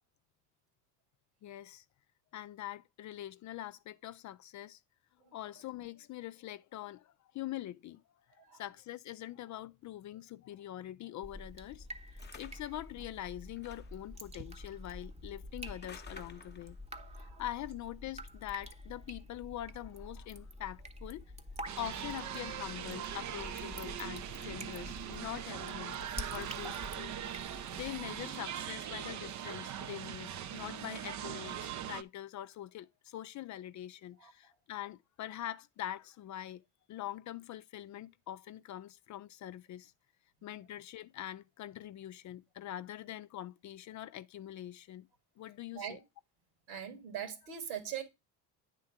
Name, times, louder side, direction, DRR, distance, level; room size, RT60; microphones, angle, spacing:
voice 1, 1.4-1.9 2.3-4.8 5.3-8.0 8.3-16.8 17.2-21.2 21.8-26.0 26.3-27.2 27.4-36.6 36.9-39.9 40.4-45.1 45.4-46.0, left 13 dB, 40° left, 0.4 m, -44 dB
Drip, 11.2-28.2, equal, 15° right, 0.9 m, -48 dB
sound 1, 12.2-12.8 13.6-14.1 15.7-16.8, left 6 dB, 20° left, 0.9 m, -53 dB
voice 2, 17.0-17.4 27.1-27.8 34.2-34.3 45.7-46.0 46.7-48.0, right 9 dB, 75° right, 2.2 m, -43 dB
sound 2, 21.7-32.0, right 10 dB, 40° right, 0.6 m, -41 dB
9.3 x 3.8 x 4.8 m
hypercardioid pair, 60°, 47 cm